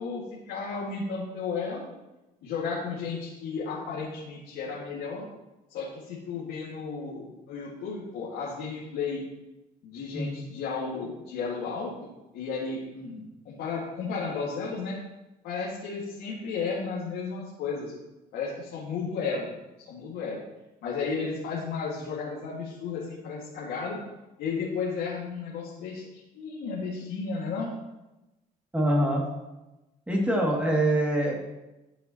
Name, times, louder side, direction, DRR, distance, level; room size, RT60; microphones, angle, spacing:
voice 1, 0.0-1.8 2.4-5.3 5.7-9.2 9.8-11.9 12.3-15.0 15.4-17.9 18.3-19.6 19.9-20.4 20.8-24.0 24.4-27.7, left 5 dB, 80° left, -6 dB, 2.1 m, -33 dB
voice 2, 28.7-29.2 30.1-31.4, right 1 dB, 10° right, -2 dB, 2.5 m, -24 dB
12.5 x 7.1 x 3.0 m, 1.0 s
cardioid pair, 110°, 17 cm